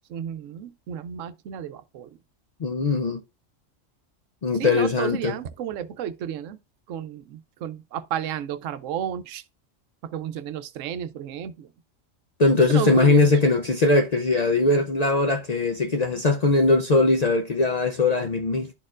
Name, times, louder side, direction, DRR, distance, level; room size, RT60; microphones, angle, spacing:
voice 1, 0.1-2.1 4.5-6.6 6.9-9.4 10.0-11.7 12.6-13.3, right 9 dB, 80° right, 0.9 m, -32 dB
voice 2, 2.6-3.2 4.4-5.3 12.4-18.7, left 3 dB, 55° left, 0.4 m, -20 dB
11.5 x 4.3 x 2.4 m
omnidirectional pair, 1.3 m